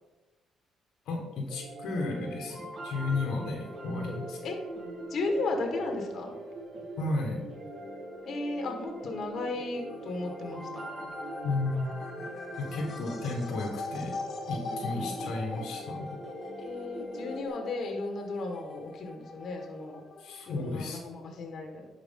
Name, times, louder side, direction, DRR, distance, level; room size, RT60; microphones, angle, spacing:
voice 1, 1.0-4.4 7.0-7.4 11.4-12.3 12.6-14.1 14.5-16.1 20.2-21.0, left 2 dB, 85° left, 1 dB, 1.4 m, -33 dB
sound 1, 1.5-17.5, right 1 dB, 45° right, 2.4 m, -42 dB
voice 2, 4.1-4.6 5.1-6.4 8.2-10.8 14.7-15.1 16.6-20.0 20.4-21.9, left 2 dB, 60° left, 3 dB, 1.5 m, -35 dB
sound 2, 9.7-21.0, left 4 dB, 45° left, 1.1 m, -43 dB
11.0 x 4.8 x 3.8 m, 1.1 s
cardioid pair, 90°, 0 cm